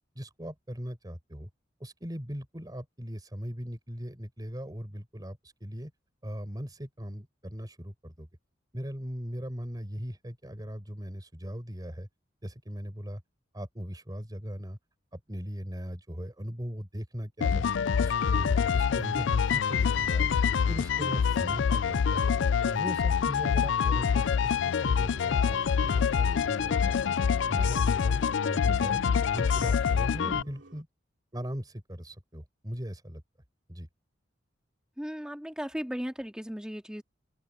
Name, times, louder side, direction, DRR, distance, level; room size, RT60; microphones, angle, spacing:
voice 1, 0.1-1.5 1.8-5.9 6.2-8.3 8.7-12.1 12.4-13.2 13.5-14.8 15.1-17.7 18.0-20.4 20.7-22.4 22.7-27.2 27.5-29.0 29.3-30.9 31.3-33.2 33.7-33.9, equal, 20° right, 4.6 m, -39 dB
sound 1, 17.4-30.4, left 7 dB, 70° left, 0.4 m, -26 dB
sound 2, 21.2-30.8, right 2 dB, 75° right, 3.3 m, -50 dB
voice 2, 35.0-37.0, equal, 5° right, 2.5 m, -36 dB
open air
head